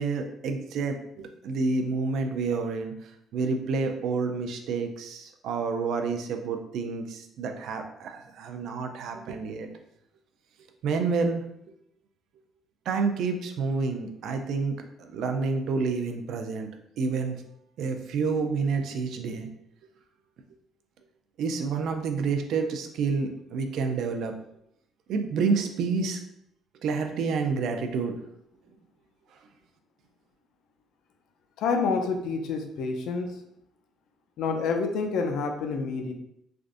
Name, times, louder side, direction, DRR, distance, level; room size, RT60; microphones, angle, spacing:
voice 1, 0.0-2.9 3.3-9.7 10.8-11.4 12.9-16.7 17.0-17.4 17.8-19.5 21.4-24.3 25.1-26.2 26.8-28.2, right 4 dB, 60° right, 5 dB, 0.3 m, -29 dB
voice 2, 31.6-33.3 34.4-36.1, left 4 dB, 65° left, 5 dB, 0.4 m, -28 dB
3.3 x 2.5 x 2.4 m, 0.77 s
cardioid pair, 180°, 0 cm